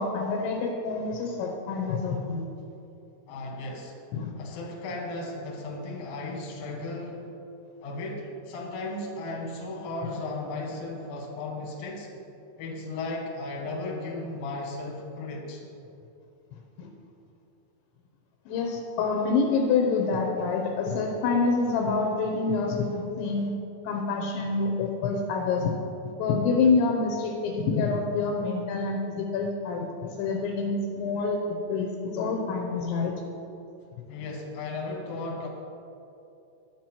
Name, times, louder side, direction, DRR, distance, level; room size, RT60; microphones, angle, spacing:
voice 1, 0.0-2.4 4.1-4.3 16.8-16.9 18.5-23.5 23.8-25.7 26.0-33.1, left 4 dB, 80° left, 1 dB, 2.9 m, -27 dB
voice 2, 3.3-4.0 4.4-7.3 7.8-12.1 12.6-15.6 34.1-35.5, left 2 dB, 60° left, -1 dB, 2.4 m, -35 dB
10.0 x 9.2 x 4.4 m, 2.8 s
omnidirectional pair, 5.6 m